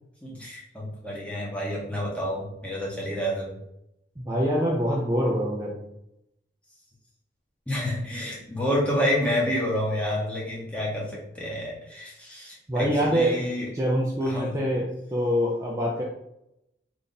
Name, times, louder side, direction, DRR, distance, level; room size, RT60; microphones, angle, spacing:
voice 1, 0.2-3.6 7.7-13.7 14.3-14.5, equal, 5° left, -4 dB, 0.9 m, -29 dB
voice 2, 4.2-5.9 12.7-13.5 13.7-16.0, equal, 15° right, -4 dB, 0.5 m, -25 dB
3.4 x 2.6 x 4.0 m, 0.82 s
head